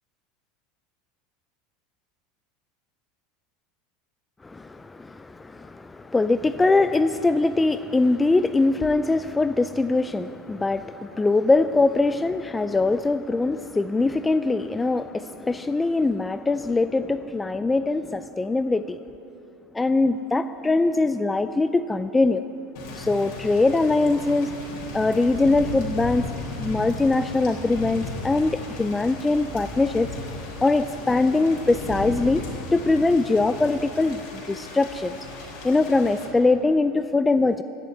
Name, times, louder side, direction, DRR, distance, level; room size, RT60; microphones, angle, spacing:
voice 1, 4.4-19.0 19.7-22.4 22.9-24.6 24.9-30.1 30.6-34.2 34.5-35.2 35.6-37.6, left 3 dB, 10° left, 11 dB, 0.3 m, -22 dB
Thunder / Rain, 22.7-36.3, left 2 dB, 65° left, 3.8 m, -36 dB
16.0 x 7.3 x 9.5 m, 2.7 s
supercardioid pair, 135°, 0 cm